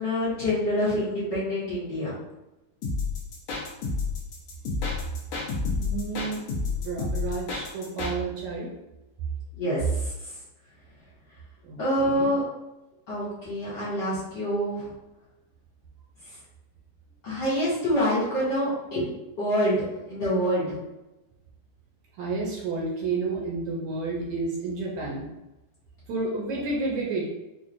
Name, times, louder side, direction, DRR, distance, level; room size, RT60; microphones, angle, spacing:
voice 1, 0.0-2.2 9.5-10.3 11.8-12.4 13.1-14.9 17.2-19.1 19.4-20.8, equal, 85° left, -10 dB, 0.9 m, -26 dB
sound 1, 2.8-8.1, left 4 dB, 70° left, 1.7 m, -29 dB
voice 2, 5.8-8.7 11.6-12.3 22.2-25.3 26.1-27.3, right 3 dB, 75° right, -3 dB, 1.8 m, -31 dB
5.9 x 2.1 x 2.5 m, 0.99 s
omnidirectional pair, 3.6 m